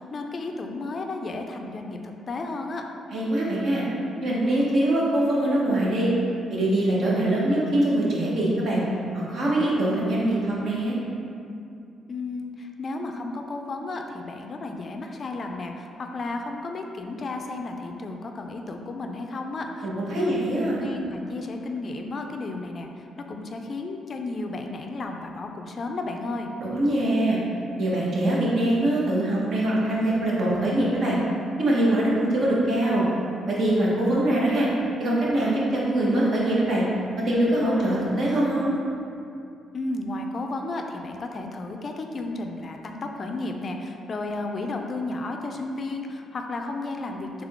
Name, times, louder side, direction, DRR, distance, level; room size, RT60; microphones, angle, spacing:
voice 1, 0.0-2.9 12.1-19.9 20.2-20.3 20.8-26.6 39.7-47.4, left 2 dB, 45° left, 3 dB, 0.3 m, -33 dB
voice 2, 3.1-3.8 4.2-6.1 6.5-8.8 9.1-11.0 19.8-20.8 26.6-27.4 27.8-31.2 31.6-33.0 33.5-34.7 35.0-36.8 37.2-38.8, right 1 dB, 60° right, -5 dB, 1.1 m, -23 dB
3.6 x 3.3 x 3.5 m, 2.6 s
cardioid pair, 90°, 0 cm